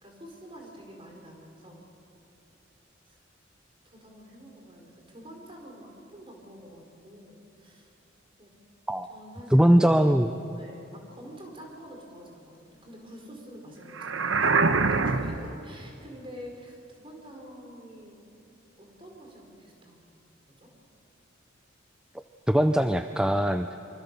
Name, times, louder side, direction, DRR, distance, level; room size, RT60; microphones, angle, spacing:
voice 1, 0.0-1.8 3.0-3.2 3.8-7.9 8.4-8.5 9.1-9.8 10.5-14.7 15.0-18.2 18.8-20.3 20.6-20.7, equal, 25° right, 1 dB, 4.6 m, -47 dB
voice 2, 9.5-10.3 22.5-23.7, equal, 5° right, 7 dB, 0.5 m, -21 dB
sound 1, 13.9-15.6, right 4 dB, 80° right, 1.0 m, -24 dB
25.0 x 25.0 x 6.9 m, 2.8 s
head